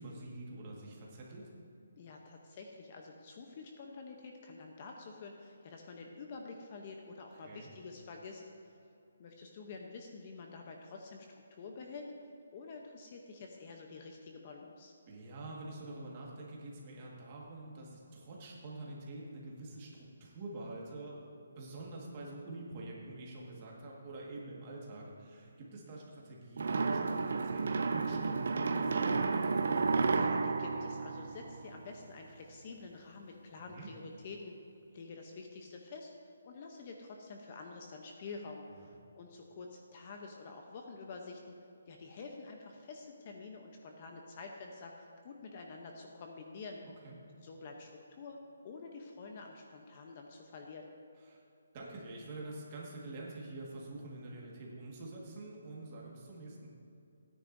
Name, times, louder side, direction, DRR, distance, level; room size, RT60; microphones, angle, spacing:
voice 1, 0.0-1.5 7.3-7.7 15.1-29.6 33.6-33.9 47.0-47.2 51.3-51.4 51.7-56.7, right 2 dB, 25° right, -3 dB, 1.7 m, -46 dB
voice 2, 2.0-8.8 9.2-12.1 12.5-14.9 30.1-34.5 34.9-41.6 41.9-46.8 47.4-48.4 48.6-50.9, left 4 dB, 30° left, 2 dB, 0.7 m, -48 dB
sound 1, 26.6-31.9, right 4 dB, 60° right, 0.6 m, -32 dB
16.0 x 9.9 x 2.6 m, 2.6 s
hypercardioid pair, 170°, 0 cm